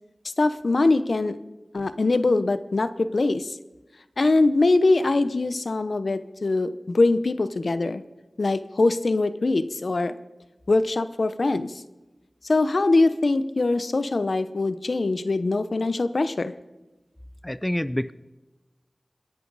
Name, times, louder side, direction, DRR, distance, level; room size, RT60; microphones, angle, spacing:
voice 1, 0.4-1.4 1.7-3.6 4.2-8.0 8.4-10.1 10.7-11.7 12.5-16.5, left 2 dB, 75° left, 12 dB, 0.8 m, -22 dB
voice 2, 17.4-18.1, left 1 dB, 15° left, 15 dB, 0.4 m, -27 dB
27.0 x 11.0 x 4.1 m, 1.1 s
wide cardioid pair, 65°, 0 cm